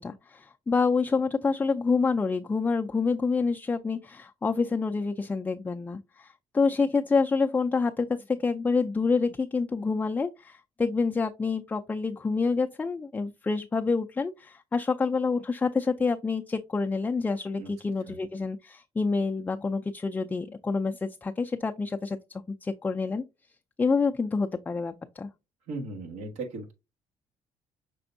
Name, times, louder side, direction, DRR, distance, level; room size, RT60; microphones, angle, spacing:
voice 1, 0.0-22.2 22.6-23.2 23.8-25.3, left 4 dB, 15° left, 0.3 m, -27 dB
voice 2, 25.7-26.7, right 3 dB, 85° right, 1.5 m, -37 dB
6.0 x 3.4 x 2.6 m
cardioid pair, 100°, 11 cm